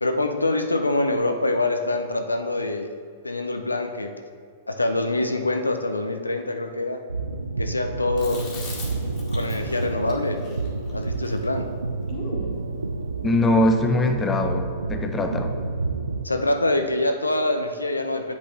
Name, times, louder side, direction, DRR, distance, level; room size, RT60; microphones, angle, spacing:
voice 1, 0.0-2.9 3.2-4.1 4.7-7.0 7.6-8.5 9.3-10.4 10.9-11.7 16.2-18.4, left 2 dB, 85° left, 6 dB, 0.5 m, -25 dB
sound 1, 7.1-16.3, right 3 dB, 85° right, 0.3 m, -29 dB
Chewing mastication, 8.2-12.6, left 2 dB, 30° left, 1.8 m, -39 dB
voice 2, 13.2-15.5, left 2 dB, 15° left, 6 dB, 0.7 m, -22 dB
8.2 x 5.1 x 3.2 m, 2.2 s
figure-of-eight pair, 105°, 0 cm